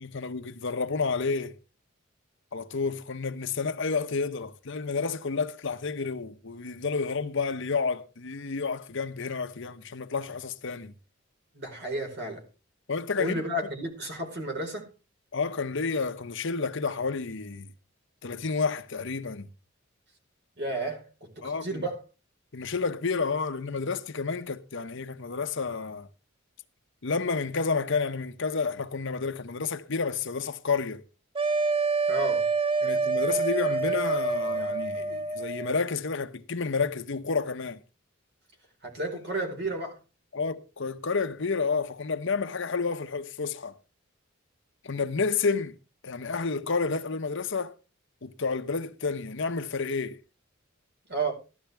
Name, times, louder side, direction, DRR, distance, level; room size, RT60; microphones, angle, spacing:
voice 1, 0.0-1.5 2.5-10.9 12.9-13.4 15.3-17.7 18.2-19.5 21.4-21.9 22.5-26.1 27.0-31.0 32.8-37.8 39.3-39.4 40.3-43.8 44.8-45.8 46.0-47.7 48.2-50.2, left 4 dB, 65° left, 0.9 m, -30 dB
voice 2, 11.5-12.4 13.2-14.9 20.6-22.0 32.1-32.5 38.8-40.0 51.1-51.3, right 2 dB, 55° right, 4.4 m, -32 dB
sound 1, 31.3-35.8, right 4 dB, 25° right, 0.5 m, -27 dB
14.5 x 11.5 x 3.4 m
head